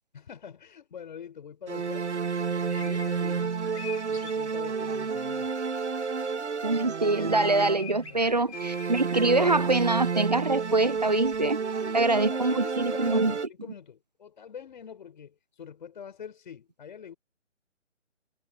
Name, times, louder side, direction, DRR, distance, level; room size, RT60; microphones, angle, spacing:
voice 1, 0.1-2.2 2.5-3.6 4.1-5.5 8.0-8.4 11.8-17.2, left 7 dB, 40° left, 4.9 m, -45 dB
sound 1, 1.7-8.1 8.5-13.5, right 5 dB, 70° right, 1.0 m, -30 dB
sound 2, 2.7-4.6 5.1-5.2 6.7-6.8 7.2-10.3 10.5-11.5 12.3-12.5, left 5 dB, 60° left, 3.4 m, -45 dB
voice 2, 6.6-11.6 11.9-13.3, right 2 dB, 35° right, 0.4 m, -24 dB
figure-of-eight pair, 145°, 37 cm